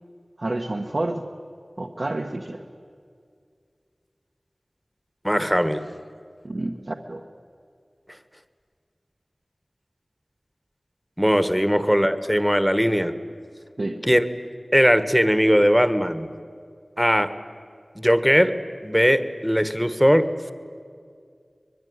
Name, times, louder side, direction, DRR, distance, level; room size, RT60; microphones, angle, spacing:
voice 1, 0.4-1.3 1.8-2.6 6.4-7.3 13.8-14.0, right 2 dB, 55° right, 2 dB, 1.3 m, -29 dB
voice 2, 5.2-5.9 11.2-13.1 14.0-14.2 14.7-16.3 17.0-17.3 17.9-18.5 18.8-20.5, equal, ahead, 11 dB, 1.4 m, -19 dB
24.0 x 21.0 x 9.5 m, 2.2 s
wide cardioid pair, 60°, 0 cm